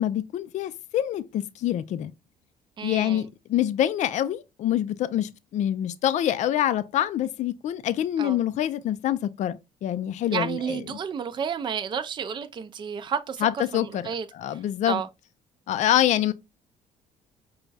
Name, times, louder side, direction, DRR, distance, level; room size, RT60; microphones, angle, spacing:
voice 1, 0.0-2.1 2.8-11.0 13.4-14.1 14.3-15.0 15.7-16.3, left 11 dB, 55° left, 0.4 m, -26 dB
voice 2, 2.8-3.2 8.2-8.4 10.3-13.5 13.7-14.6 14.8-15.1, right 7 dB, 30° right, 0.4 m, -31 dB
5.1 x 2.3 x 3.2 m
cardioid pair, 105°, 15 cm